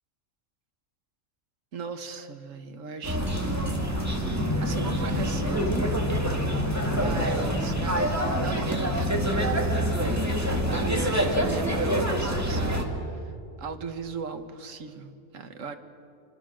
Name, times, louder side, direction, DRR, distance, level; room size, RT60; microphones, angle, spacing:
voice 1, 1.7-3.8 4.6-5.9 6.9-9.5 10.7-13.2 13.6-15.8, right 5 dB, 75° right, 7 dB, 1.7 m, -36 dB
sound 1, 3.0-12.8, equal, 10° right, 2.2 m, -26 dB
sound 2, 4.4-10.2, left 3 dB, 30° left, 0.4 m, -34 dB
26.5 x 25.0 x 6.3 m, 2.5 s
omnidirectional pair, 1.3 m